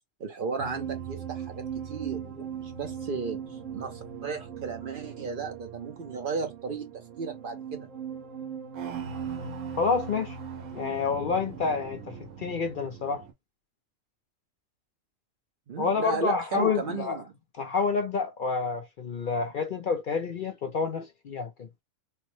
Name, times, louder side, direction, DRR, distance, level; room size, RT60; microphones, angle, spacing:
voice 1, 0.2-7.9 15.7-17.2, right 5 dB, 50° right, 0.7 m, -35 dB
sound 1, 0.6-13.3, right 7 dB, 90° right, 1.1 m, -39 dB
voice 2, 9.8-10.4 10.7-13.3 15.8-17.2 17.5-21.7, left 5 dB, 55° left, 0.6 m, -28 dB
3.3 x 2.0 x 3.0 m
omnidirectional pair, 1.3 m